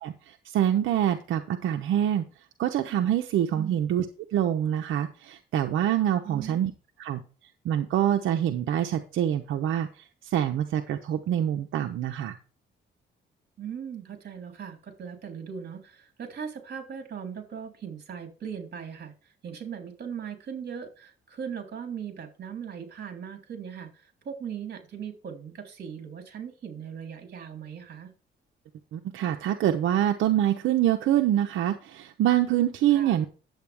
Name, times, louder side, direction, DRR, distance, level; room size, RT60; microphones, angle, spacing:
voice 1, 0.0-2.2 2.6-4.0 4.3-6.7 7.0-7.2 7.6-12.4 28.9-33.3, right 11 dB, 80° right, 5 dB, 0.9 m, -25 dB
voice 2, 6.2-6.6 13.6-19.1 19.4-28.1 32.9-33.2, right 7 dB, 50° right, 4 dB, 3.5 m, -39 dB
10.5 x 8.0 x 3.5 m, 0.36 s
cardioid pair, 90°, 20 cm